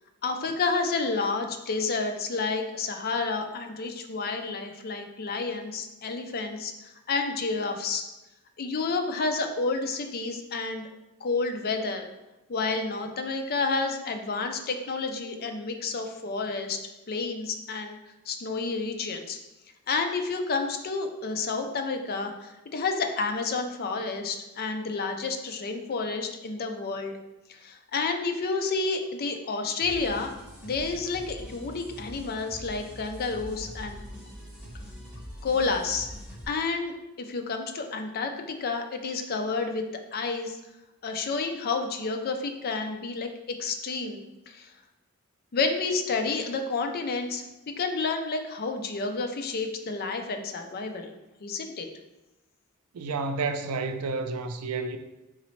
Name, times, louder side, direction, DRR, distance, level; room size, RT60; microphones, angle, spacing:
voice 1, 0.2-6.7 7.1-8.0 8.6-10.9 11.2-12.1 12.5-16.8 17.1-18.0 18.3-19.4 19.9-27.1 27.6-30.3 30.6-34.0 35.4-36.1 36.5-39.8 40.1-40.6 41.0-43.3 43.6-44.2 44.5-44.7 45.5-47.4 47.8-51.1 51.4-51.9, left 4 dB, 45° left, 0.5 m, -30 dB
sound 1, 29.8-36.5, equal, 5° right, 1.6 m, -43 dB
voice 2, 52.9-55.0, right 4 dB, 85° right, 0.4 m, -30 dB
4.1 x 3.9 x 3.1 m
head